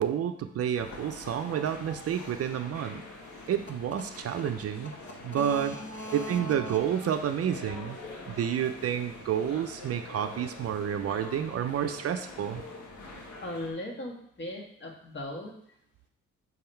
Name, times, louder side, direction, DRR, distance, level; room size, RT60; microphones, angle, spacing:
voice 1, 0.0-3.0 3.5-4.9 5.2-5.8 6.1-8.0 8.3-12.6, right 9 dB, 50° right, 8 dB, 0.5 m, -30 dB
sound 1, 0.7-13.7, left 2 dB, 70° left, 1.5 m, -45 dB
voice 2, 5.3-6.8 13.4-15.5, left 1 dB, 40° left, 0 dB, 1.6 m, -38 dB
6.1 x 3.7 x 4.4 m, 0.67 s
cardioid pair, 90°, 30 cm